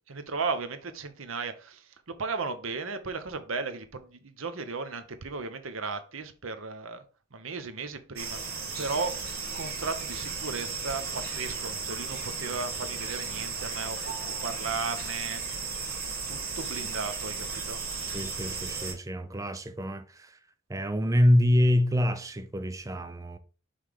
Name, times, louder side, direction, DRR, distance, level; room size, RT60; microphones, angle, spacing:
voice 1, 0.1-7.0 7.3-9.2 9.5-15.4 16.3-17.8, right 4 dB, 80° right, 0.9 m, -35 dB
sound 1, 8.2-18.9, right 5 dB, 50° right, 2.2 m, -35 dB
voice 2, 18.1-20.3 20.7-23.4, left 1 dB, 15° right, 0.5 m, -26 dB
5.6 x 3.3 x 5.0 m
head